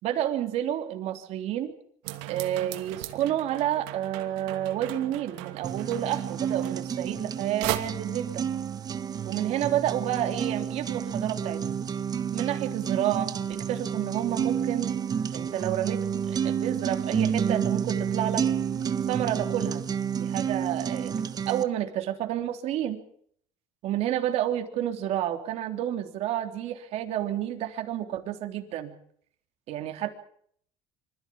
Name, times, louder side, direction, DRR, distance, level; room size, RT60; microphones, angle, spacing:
voice 1, 0.0-1.7 2.3-8.4 9.2-11.8 12.3-14.9 15.3-18.4 19.1-19.8 20.2-21.1 21.4-23.0 23.8-28.9 29.7-30.2, right 11 dB, 60° right, 5 dB, 3.4 m, -30 dB
sound 1, 2.0-7.3 7.6-7.8, right 17 dB, 85° right, 2.7 m, -37 dB
sound 2, 5.6-21.6, right 7 dB, 30° right, 1.3 m, -30 dB
25.5 x 15.0 x 8.7 m, 0.65 s
cardioid pair, 115°, 12 cm